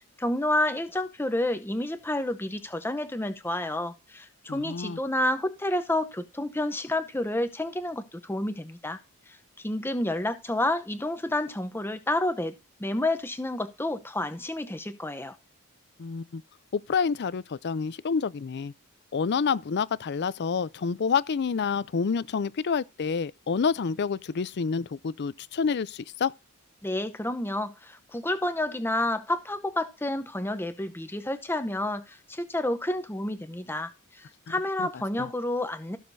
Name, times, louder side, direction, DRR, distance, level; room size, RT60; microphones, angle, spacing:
voice 1, 0.2-9.0 9.6-12.5 12.8-15.4 26.8-36.0, left 1 dB, 10° left, 0.7 m, -29 dB
voice 2, 4.5-5.0 16.0-16.4 16.7-18.7 19.1-26.3 34.5-34.6 34.8-34.9 35.2-35.3, left 5 dB, 50° left, 0.4 m, -28 dB
15.5 x 6.5 x 2.7 m
head